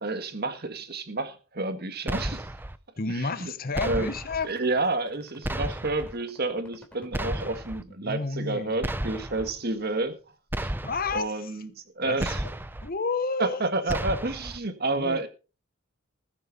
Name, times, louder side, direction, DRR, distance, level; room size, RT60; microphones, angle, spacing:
voice 1, 0.0-2.5 3.1-3.5 3.8-4.1 4.4-10.2 10.6-10.7 11.1-12.4 13.4-15.3, right 2 dB, 45° right, 1.7 m, -30 dB
sound 1, 2.1-2.8 3.7-4.4 5.4-6.1 7.1-7.8 8.8-9.5 10.5-11.2 12.2-12.9 13.9-14.6, right 1 dB, 10° right, 0.5 m, -32 dB
voice 2, 3.0-4.5 8.0-8.7 10.8-11.3 12.0-12.2 12.8-13.6 15.0-15.2, left 4 dB, 45° left, 1.0 m, -30 dB
sound 2, 4.3-7.6 8.9-10.3, equal, 5° left, 3.1 m, -50 dB
20.5 x 7.2 x 4.2 m
head